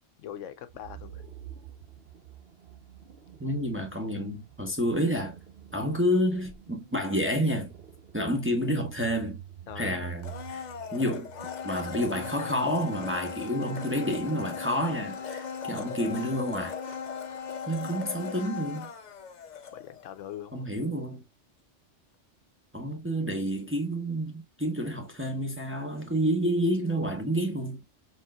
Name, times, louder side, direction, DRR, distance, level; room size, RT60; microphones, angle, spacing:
voice 1, 0.2-1.2 9.7-10.1 19.7-20.7, left 10 dB, 80° left, 1.0 m, -42 dB
sound 1, 0.7-12.0, right 9 dB, 55° right, 0.9 m, -48 dB
voice 2, 3.4-5.4 5.7-7.7 8.1-9.4 9.8-11.3 11.6-16.8 17.7-18.9 20.5-21.2 22.7-27.8, equal, 10° right, 0.7 m, -29 dB
Domestic sounds home sounds, 10.2-20.2 20.5-20.6, left 6 dB, 50° left, 0.6 m, -38 dB
4.3 x 3.8 x 2.3 m
omnidirectional pair, 1.3 m